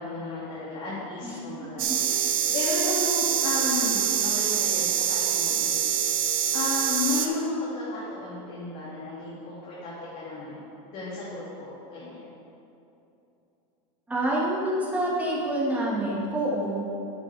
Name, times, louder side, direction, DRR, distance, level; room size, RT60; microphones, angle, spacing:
voice 1, 0.0-2.2 2.5-5.7 6.5-10.6 10.9-12.3, left 3 dB, 45° left, -8 dB, 2.3 m, -33 dB
sound 1, 1.8-7.3, right 9 dB, 85° right, 0.8 m, -25 dB
voice 2, 14.1-16.9, right 1 dB, 10° right, -5 dB, 1.9 m, -27 dB
11.0 x 8.3 x 3.4 m, 2.8 s
supercardioid pair, 140°, 17 cm